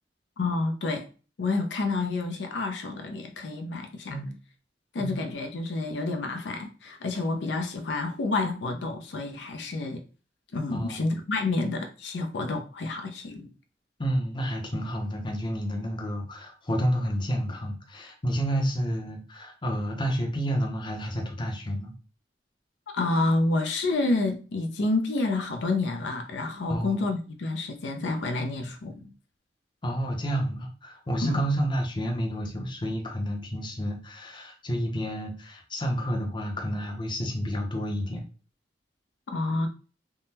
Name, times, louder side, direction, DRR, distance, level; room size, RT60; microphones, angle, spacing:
voice 1, 0.4-1.1 1.4-4.3 4.9-10.0 10.5-13.5 22.9-29.1 31.2-31.4 39.3-39.7, left 2 dB, 85° left, 0.5 m, -29 dB
voice 2, 10.7-11.0 14.0-21.9 26.7-27.0 29.8-38.2, equal, 25° left, 0.6 m, -30 dB
3.5 x 2.0 x 2.8 m
head